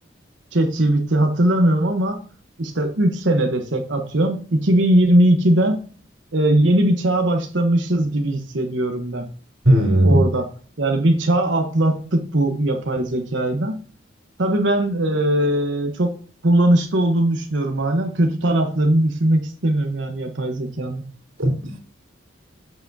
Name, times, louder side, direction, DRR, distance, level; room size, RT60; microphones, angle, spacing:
voice 1, 0.5-2.2 2.6-5.8 6.3-9.2 10.0-10.5 10.8-13.8 14.4-16.1 16.4-21.0, right 1 dB, 70° right, 1.1 m, -19 dB
voice 2, 9.6-10.2 21.4-21.8, right 1 dB, 90° right, 3.1 m, -16 dB
8.0 x 6.9 x 2.8 m
head